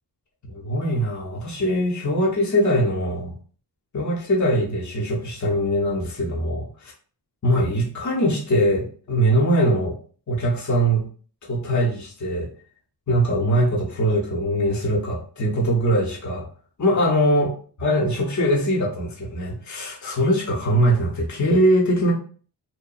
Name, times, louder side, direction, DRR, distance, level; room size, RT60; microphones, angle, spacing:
voice 1, 0.5-3.3 3.9-6.7 7.4-10.0 10.3-11.1 11.5-12.5 13.1-16.5 16.8-17.5 17.8-22.1, equal, 40° left, -2 dB, 0.8 m, -22 dB
2.8 x 2.1 x 2.4 m, 0.43 s
cardioid pair, 45°, 44 cm